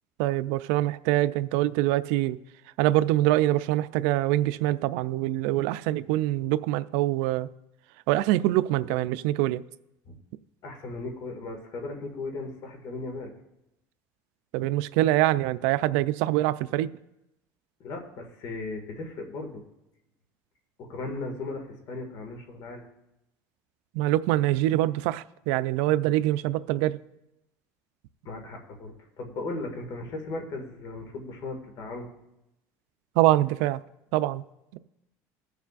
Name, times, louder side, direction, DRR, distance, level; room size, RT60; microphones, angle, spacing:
voice 1, 0.2-2.4 2.8-7.5 8.1-9.6 14.5-16.9 23.9-27.0 33.2-33.8 34.1-34.4 34.7-34.8, right 15 dB, 85° right, 0.4 m, -24 dB
voice 2, 10.6-13.3 17.8-19.6 20.8-22.9 28.2-32.1, left 2 dB, 55° left, 2.0 m, -37 dB
21.0 x 7.0 x 2.5 m
cardioid pair, 145°, 7 cm